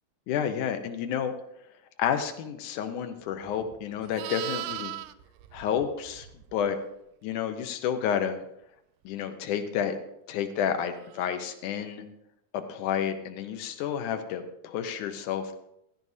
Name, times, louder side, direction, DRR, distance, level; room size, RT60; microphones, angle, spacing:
voice 1, 0.3-1.3 2.0-5.0 5.5-6.3 6.5-6.8 7.2-8.4 9.1-10.0 10.3-12.0 12.5-15.6, left 8 dB, 80° left, 7 dB, 1.8 m, -30 dB
Livestock farm animals working animals, 3.4-6.7 11.1-11.3, right 15 dB, 90° right, 1.9 m, -39 dB
15.5 x 13.5 x 2.7 m, 0.79 s
omnidirectional pair, 4.6 m